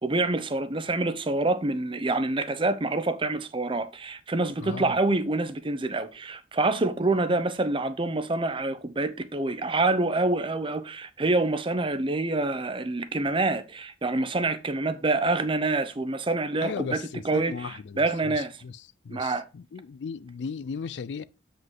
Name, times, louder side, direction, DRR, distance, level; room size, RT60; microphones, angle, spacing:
voice 1, 0.0-18.6 19.1-19.4, right 2 dB, 30° right, 0.7 m, -27 dB
voice 2, 4.6-4.9 16.6-21.2, left 5 dB, 80° left, 0.4 m, -37 dB
7.9 x 5.1 x 3.8 m
head